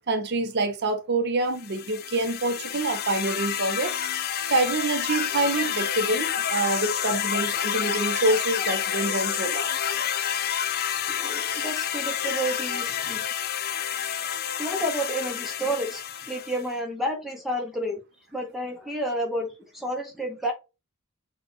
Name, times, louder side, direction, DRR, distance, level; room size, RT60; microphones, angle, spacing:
voice 1, 0.1-3.9 4.5-9.7, right 2 dB, 50° right, 0.6 m, -26 dB
sound 1, 1.6-16.7, left 9 dB, 45° left, 0.4 m, -29 dB
voice 2, 11.0-13.2 14.6-18.0 18.3-20.5, right 1 dB, ahead, 0.8 m, -30 dB
4.3 x 2.3 x 4.7 m
head